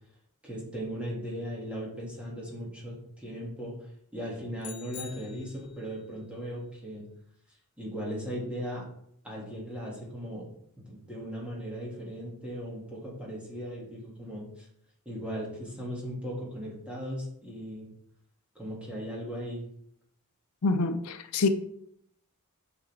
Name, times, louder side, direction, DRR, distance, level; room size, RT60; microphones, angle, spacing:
voice 1, 0.4-7.0 7.8-8.8 9.2-10.5 10.8-14.7 15.1-17.9 18.5-19.6, equal, 5° right, 2.6 m, -38 dB
sound 1, 4.6-5.9, left 9 dB, 55° left, 1.1 m, -45 dB
voice 2, 20.6-21.5, left 3 dB, 80° left, 0.6 m, -26 dB
8.3 x 5.6 x 3.6 m
head